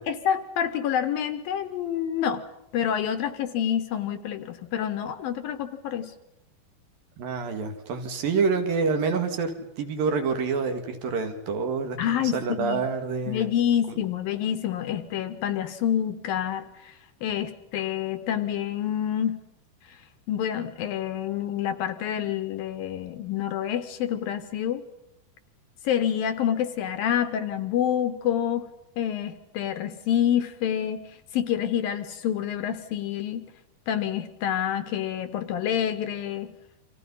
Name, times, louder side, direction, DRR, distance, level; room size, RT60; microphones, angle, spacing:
voice 1, 0.1-2.4 2.7-6.1 12.0-12.8 13.3-16.9 17.2-19.4 20.3-24.8 25.8-28.7 29.0-33.5 33.9-36.5, left 9 dB, 70° left, 9 dB, 2.6 m, -27 dB
voice 2, 7.2-13.5 13.9-14.0, right 5 dB, 60° right, 6 dB, 3.4 m, -27 dB
29.0 x 25.5 x 5.5 m, 0.86 s
omnidirectional pair, 4.8 m